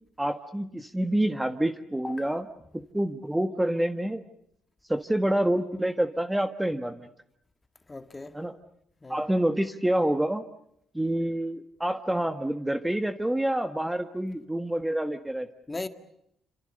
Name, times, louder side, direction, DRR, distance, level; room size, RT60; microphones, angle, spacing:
voice 1, 0.2-2.4 2.9-4.2 4.9-7.1 8.3-8.5 9.1-10.4 10.9-15.5, right 1 dB, 10° right, 1.4 m, -27 dB
voice 2, 7.9-8.4 9.0-9.2 15.7-15.9, left 3 dB, 20° left, 2.0 m, -37 dB
29.0 x 26.5 x 6.6 m
cardioid pair, 90°, 0 cm